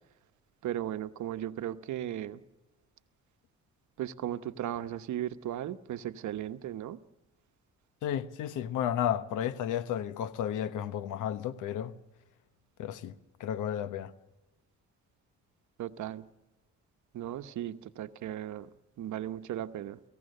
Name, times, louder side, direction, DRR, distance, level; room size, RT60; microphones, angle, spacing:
voice 1, 0.6-2.4 4.0-7.0 15.8-16.3 17.1-18.7 19.0-20.0, right 11 dB, 70° right, 1.0 m, -36 dB
voice 2, 8.0-12.0 12.8-14.1, left 10 dB, 90° left, 1.1 m, -33 dB
29.0 x 16.0 x 6.7 m
cardioid pair, 90°, 30 cm